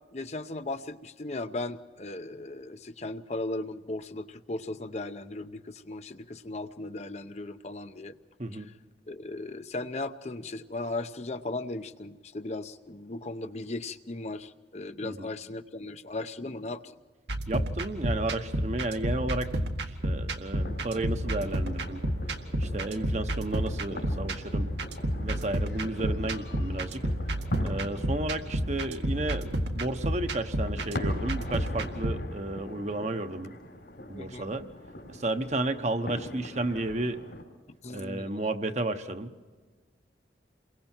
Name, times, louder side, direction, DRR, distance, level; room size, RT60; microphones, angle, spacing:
voice 1, 0.1-8.2 8.5-8.6 9.1-17.0 34.1-34.5 37.8-38.4, left 2 dB, 40° left, 9 dB, 0.7 m, -37 dB
voice 2, 8.4-8.7 15.0-15.3 17.5-19.6 19.9-22.0 22.6-24.7 25.2-27.1 27.6-33.5 34.1-34.7 35.1-37.2 37.9-39.3, right 2 dB, 40° right, 8 dB, 1.0 m, -32 dB
sound 1, 17.3-32.1, right 1 dB, 80° right, 1.9 m, -31 dB
sound 2, 20.6-37.4, left 1 dB, 75° left, 3.6 m, -42 dB
28.5 x 23.0 x 4.5 m, 1.4 s
head